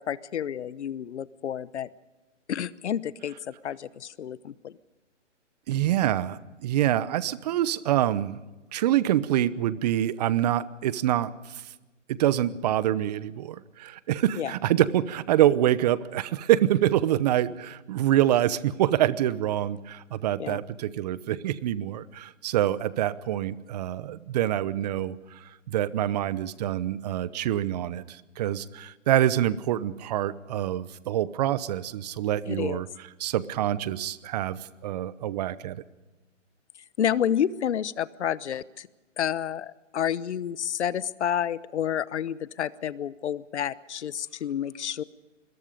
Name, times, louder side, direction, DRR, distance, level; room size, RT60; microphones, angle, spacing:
voice 1, 0.0-1.9 2.5-4.7 14.3-14.5 20.4-20.6 32.5-32.8 37.0-38.9 39.2-45.0, left 9 dB, 65° left, 18 dB, 1.0 m, -30 dB
voice 2, 5.7-8.4 8.7-11.6 12.1-35.8, right 12 dB, 35° right, 18 dB, 0.9 m, -26 dB
26.5 x 21.5 x 5.2 m, 1.1 s
hypercardioid pair, 140°, 37 cm